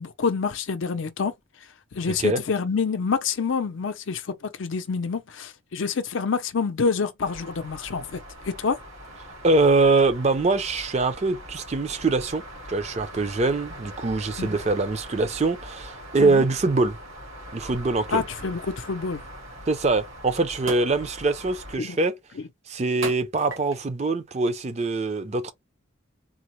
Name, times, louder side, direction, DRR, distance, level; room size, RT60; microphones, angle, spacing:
voice 1, 0.0-1.3 1.9-4.2 4.6-8.2 8.5-8.8 14.4-14.6 16.2-16.4 18.1-19.2 21.8-22.0, left 5 dB, 70° left, 0.5 m, -27 dB
voice 2, 2.1-2.4 9.4-12.4 12.7-17.0 17.5-18.2 19.7-22.1 22.7-25.5, right 3 dB, 30° right, 0.4 m, -23 dB
sound 1, 7.2-21.8, equal, 90° right, 2.0 m, -42 dB
sound 2, 19.8-19.9 20.7-21.0 21.6-22.0 23.0-23.9 24.6-24.8, right 4 dB, 70° right, 1.0 m, -35 dB
3.8 x 2.0 x 2.9 m
head